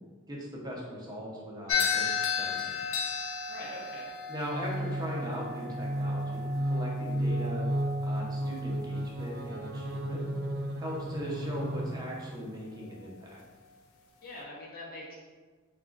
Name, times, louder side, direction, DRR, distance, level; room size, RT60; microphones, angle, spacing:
voice 1, 0.3-2.8 4.3-7.7 8.0-10.2 10.8-13.4, equal, 20° right, -4 dB, 0.7 m, -39 dB
sound 1, 1.7-10.0, left 5 dB, 70° left, 0.5 m, -35 dB
voice 2, 3.5-4.2 14.2-15.1, left 2 dB, 45° left, -5 dB, 0.8 m, -43 dB
sound 2, 4.5-12.4, right 1 dB, 50° right, 0.5 m, -33 dB
3.6 x 2.4 x 3.8 m, 1.4 s
head